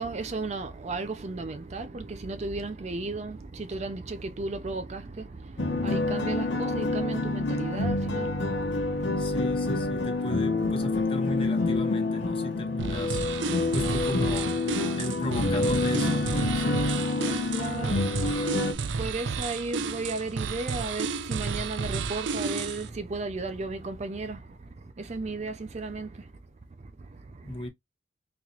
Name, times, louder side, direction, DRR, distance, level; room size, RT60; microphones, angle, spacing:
voice 1, 0.0-10.1 17.4-26.3 26.8-27.7, right 3 dB, 35° right, 0.5 m, -35 dB
sound 1, 5.6-18.7, left 2 dB, 85° left, 0.9 m, -27 dB
voice 2, 9.2-13.2 13.7-14.6 15.0-16.8 27.4-27.7, left 1 dB, 30° left, 1.1 m, -35 dB
sound 2, 12.8-22.9, right 5 dB, 90° right, 0.5 m, -32 dB
4.1 x 3.0 x 2.8 m
head